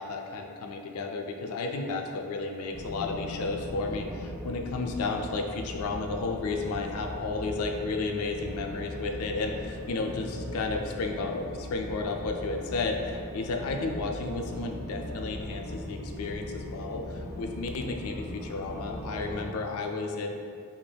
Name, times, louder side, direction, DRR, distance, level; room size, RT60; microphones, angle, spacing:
voice 1, 0.0-20.3, left 3 dB, 70° left, 3 dB, 0.3 m, -33 dB
sound 1, 1.4-15.9, equal, 85° right, 0.6 m, -54 dB
sound 2, 2.7-19.5, left 1 dB, 15° left, 0.6 m, -40 dB
sound 3, 3.8-15.8, equal, 50° right, 0.7 m, -47 dB
3.3 x 2.7 x 2.2 m, 2.3 s
head